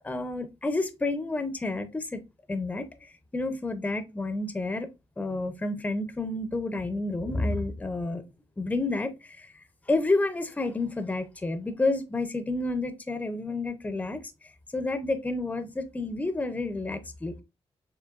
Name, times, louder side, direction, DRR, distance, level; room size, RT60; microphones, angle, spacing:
voice 1, 0.0-2.2 2.5-4.9 5.2-8.2 8.6-17.4, left 2 dB, 15° left, 0.6 m, -30 dB
6.7 x 2.8 x 2.3 m
wide cardioid pair, 140°, 11 cm